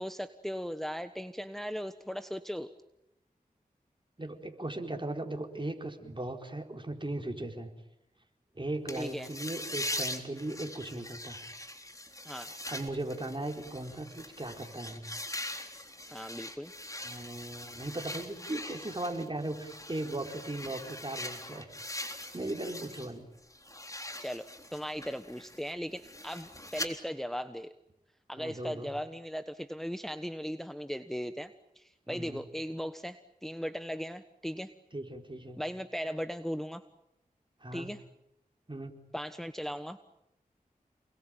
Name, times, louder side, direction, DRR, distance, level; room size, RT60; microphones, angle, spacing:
voice 1, 0.0-2.7 9.0-9.3 12.2-12.5 16.1-16.7 24.2-27.7 28.3-34.7 35.6-36.8 37.7-38.0 39.1-40.0, equal, ahead, 9 dB, 1.2 m, -38 dB
voice 2, 4.2-7.7 8.5-11.4 12.7-15.0 17.0-21.7 22.3-23.3 28.4-28.9 32.1-32.4 34.9-35.6 37.6-37.9 38.7-38.9, right 2 dB, 35° right, 4 dB, 4.6 m, -38 dB
sound 1, 8.9-23.1 23.4-26.9, left 1 dB, 20° left, 3.7 m, -42 dB
28.5 x 21.5 x 9.1 m, 0.86 s
cardioid pair, 45°, 15 cm